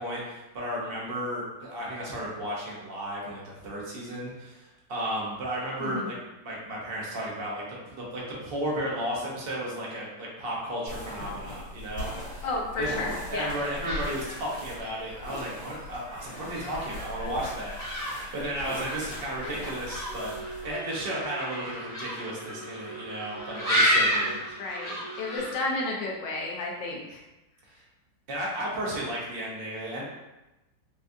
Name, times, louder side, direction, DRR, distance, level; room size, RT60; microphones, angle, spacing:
voice 1, 0.0-12.5 12.8-24.4 27.7-27.8 28.3-30.0, right 1 dB, 55° right, -5 dB, 0.6 m, -34 dB
voice 2, 5.8-6.1 12.4-13.6 19.4-19.5 24.6-27.2, left 3 dB, 80° left, -1 dB, 1.3 m, -32 dB
sound 1, 10.9-20.7, left 1 dB, 45° left, 1.5 m, -40 dB
sound 2, 13.5-25.5, equal, ahead, 1.1 m, -32 dB
sound 3, 19.6-25.4, right 2 dB, 80° right, 1.5 m, -45 dB
4.0 x 2.3 x 2.6 m, 1.0 s
omnidirectional pair, 2.0 m